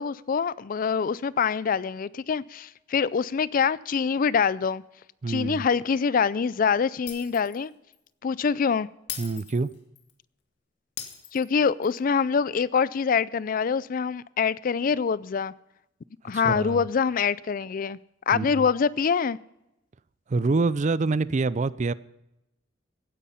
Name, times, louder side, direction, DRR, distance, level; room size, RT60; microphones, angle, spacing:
voice 1, 0.0-4.8 5.3-7.7 8.2-8.9 11.3-15.5 16.2-18.0 18.3-19.4, left 6 dB, 50° left, 0.4 m, -25 dB
voice 2, 5.2-5.6 9.2-9.7 16.4-16.8 18.3-18.6 20.3-21.9, right 3 dB, 40° right, 0.4 m, -26 dB
Shatter, 7.1-7.6 7.9-8.1 9.1-10.1 11.0-12.0, left 9 dB, 65° left, 1.9 m, -39 dB
16.0 x 9.9 x 5.6 m
head